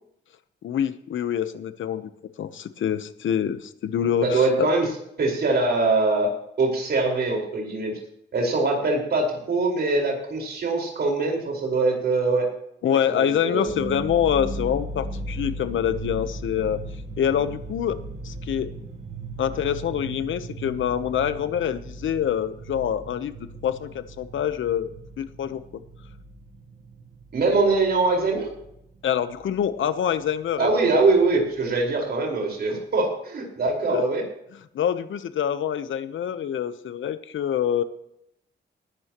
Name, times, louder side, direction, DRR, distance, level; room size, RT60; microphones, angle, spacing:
voice 1, 0.6-2.1 2.4-4.7 12.8-16.8 17.2-18.0 18.2-18.7 19.4-23.3 23.6-24.9 25.2-25.6 29.0-31.0 33.9-34.0 34.7-37.8, left 9 dB, 85° left, 12 dB, 0.9 m, -26 dB
voice 2, 4.2-4.8 5.2-6.3 6.6-8.0 8.3-12.5 12.9-13.7 27.3-28.5 30.6-34.2, right 3 dB, 55° right, 0 dB, 4.8 m, -23 dB
sound 1, 13.7-28.8 29.0-30.1 30.5-30.6 30.9-31.6, right 2 dB, 35° right, 1.2 m, -37 dB
19.0 x 12.5 x 3.0 m, 0.76 s
wide cardioid pair, 150°, 20 cm